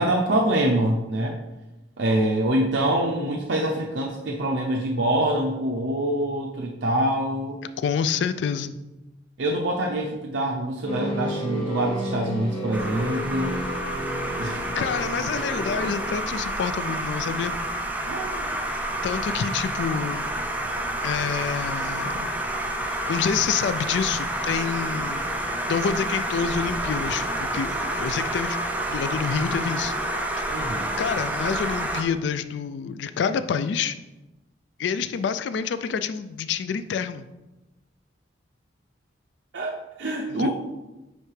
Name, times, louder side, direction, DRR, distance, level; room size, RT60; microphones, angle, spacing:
voice 1, 0.0-1.4 2.0-7.6 9.4-13.6 14.4-14.7 18.1-18.5 30.5-30.9 39.5-40.5, right 1 dB, 70° right, -1 dB, 0.6 m, -25 dB
voice 2, 7.8-8.7 14.7-17.6 18.7-20.3 21.0-22.3 23.1-25.3 25.7-28.6 28.9-29.9 30.4-30.6 31.0-33.9 34.8-37.2 40.4-40.5, left 6 dB, 65° left, 12 dB, 0.3 m, -27 dB
sound 1, 10.9-16.1, equal, 30° left, 1.2 m, -32 dB
sound 2, 12.3-28.4, left 1 dB, 90° left, 1.0 m, -45 dB
sound 3, 12.7-32.0, right 1 dB, 10° right, 0.5 m, -29 dB
9.3 x 3.3 x 3.2 m, 1.0 s
head